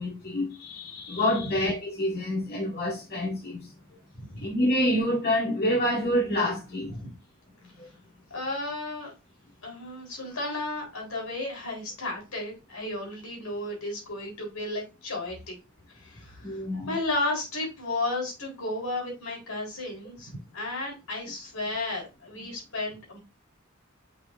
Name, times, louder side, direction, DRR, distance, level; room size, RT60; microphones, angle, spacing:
voice 1, 0.0-3.7 4.4-7.0 7.8-7.9 16.4-17.0, left 1 dB, 50° left, 2.0 m, -27 dB
voice 2, 8.3-9.1 9.6-15.6 16.0-16.6 16.8-23.2, left 2 dB, 90° left, 3.8 m, -33 dB
6.7 x 6.3 x 2.5 m
head